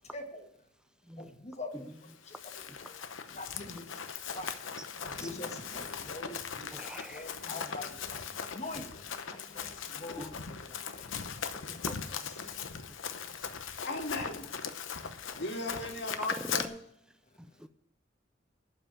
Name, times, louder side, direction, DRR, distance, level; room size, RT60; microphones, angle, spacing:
voice 1, 0.1-0.5 1.2-1.9 2.3-2.4 2.8-2.9 3.3-4.0 4.3-6.7 7.1-11.1 11.9-12.0 12.4-12.7, left 2 dB, 35° left, 4 dB, 1.7 m, -44 dB
Run, 2.1-16.6, left 7 dB, 80° left, 0.9 m, -39 dB
voice 2, 4.8-5.3 6.7-7.8 10.2-10.4 11.5-12.0 16.3-16.7, equal, 5° right, 11 dB, 0.5 m, -45 dB
voice 3, 13.8-14.5 15.4-16.7, left 2 dB, 60° left, 2 dB, 2.2 m, -36 dB
11.5 x 5.6 x 8.7 m, 0.67 s
head